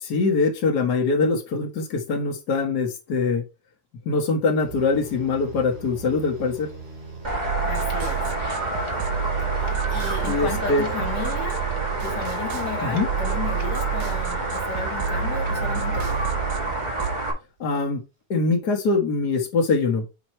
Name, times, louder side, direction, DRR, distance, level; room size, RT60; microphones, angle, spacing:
voice 1, 0.0-3.4 4.0-6.7 10.2-10.8 12.8-13.1 17.6-18.0 18.3-20.0, left 4 dB, 85° left, 0.8 m, -23 dB
sound 1, 4.6-17.4, right 6 dB, 55° right, 4.8 m, -39 dB
sound 2, 7.2-17.3, right 2 dB, 35° right, 0.7 m, -28 dB
sound 3, 7.4-17.2, right 8 dB, 80° right, 1.6 m, -30 dB
voice 2, 7.6-8.2 9.6-11.6 12.0-16.2, left 6 dB, 50° left, 1.3 m, -34 dB
7.9 x 3.0 x 4.3 m
omnidirectional pair, 3.8 m